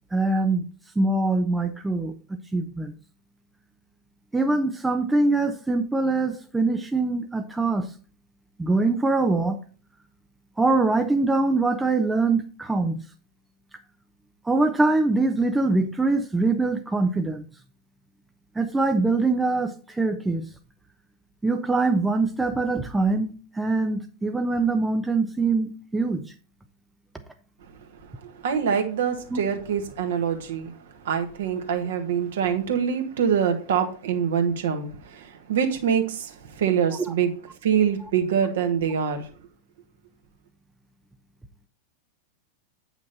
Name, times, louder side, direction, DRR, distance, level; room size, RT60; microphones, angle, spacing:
voice 1, 0.1-0.6 1.0-2.2 2.5-2.9 4.3-7.9 8.6-9.6 10.6-13.0 14.4-17.4 18.6-20.5 21.4-26.3 29.3-29.4, right 3 dB, 10° right, 0.7 m, -23 dB
voice 2, 28.0-37.3 37.6-39.3, right 7 dB, 60° right, 1.5 m, -25 dB
8.8 x 6.0 x 4.2 m
figure-of-eight pair, 90°, 0 cm